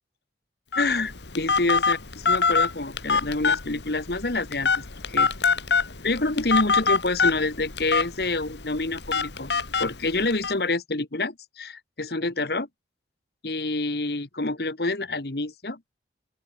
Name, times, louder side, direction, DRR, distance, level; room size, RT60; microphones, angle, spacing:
Telephone, 0.7-10.5, left 5 dB, 75° left, 2.0 m, -25 dB
voice 1, 0.7-5.3 6.0-9.5 9.8-12.7 13.4-15.9, left 2 dB, 60° left, 1.5 m, -27 dB
open air
head